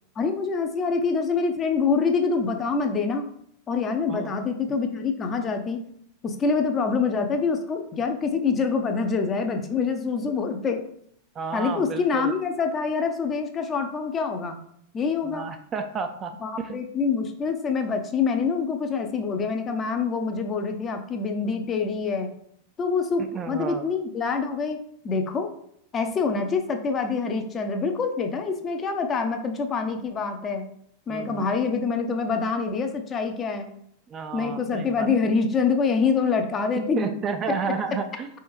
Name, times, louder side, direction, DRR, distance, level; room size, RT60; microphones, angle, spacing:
voice 1, 0.2-3.3 3.7-5.9 6.2-10.8 11.5-14.6 14.9-15.5 16.4-22.3 22.8-25.5 25.9-30.7 31.1-33.7 34.3-37.1 37.5-37.6, left 5 dB, 25° left, 5 dB, 0.5 m, -26 dB
voice 2, 11.3-12.3 15.2-16.8 23.3-23.8 31.1-31.5 34.1-35.1 37.0-38.3, right 5 dB, 25° right, 7 dB, 0.4 m, -31 dB
4.2 x 3.4 x 3.1 m, 0.68 s
figure-of-eight pair, 90°, 0 cm